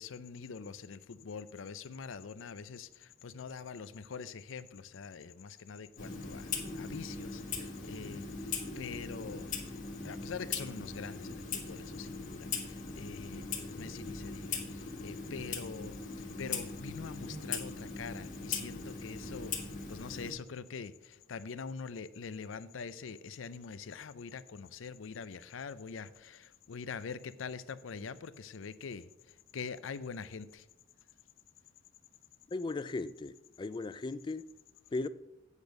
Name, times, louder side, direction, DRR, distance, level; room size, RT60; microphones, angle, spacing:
voice 1, 0.0-9.5 10.0-19.6 19.9-30.7, left 5 dB, 85° left, 0.5 m, -44 dB
Clock, 6.0-20.3, left 4 dB, 45° left, 1.4 m, -40 dB
voice 2, 32.5-34.5 34.9-35.1, left 3 dB, 25° left, 0.3 m, -37 dB
8.2 x 5.2 x 6.4 m
head